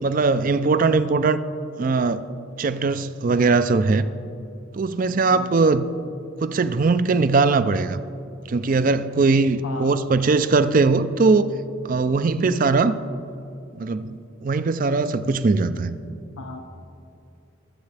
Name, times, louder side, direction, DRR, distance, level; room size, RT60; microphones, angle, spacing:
voice 1, 0.0-1.4 1.8-2.2 2.6-4.0 4.7-5.9 6.4-8.0 8.5-11.5 11.9-12.9 13.8-16.0, right 4 dB, 40° right, 13 dB, 0.4 m, -20 dB
voice 2, 9.6-9.9 12.3-12.6 15.7-15.8 16.4-16.6, left 3 dB, 75° left, 5 dB, 0.6 m, -36 dB
23.0 x 8.1 x 3.4 m, 2.7 s
head